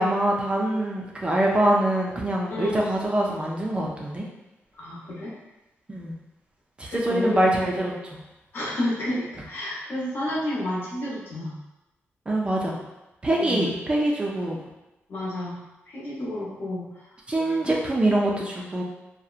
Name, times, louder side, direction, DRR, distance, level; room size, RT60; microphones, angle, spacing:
voice 1, 0.0-4.2 5.9-6.1 6.8-8.2 12.3-12.8 13.2-14.6 17.3-18.8, right 1 dB, 25° right, -2 dB, 0.4 m, -24 dB
voice 2, 2.5-2.8 4.8-5.3 6.9-7.5 8.5-11.5 13.4-13.8 15.1-15.6 15.9-16.9 17.6-17.7, left 1 dB, 55° left, -5 dB, 0.8 m, -30 dB
2.7 x 2.0 x 2.4 m, 0.99 s
wide cardioid pair, 125°, 5 cm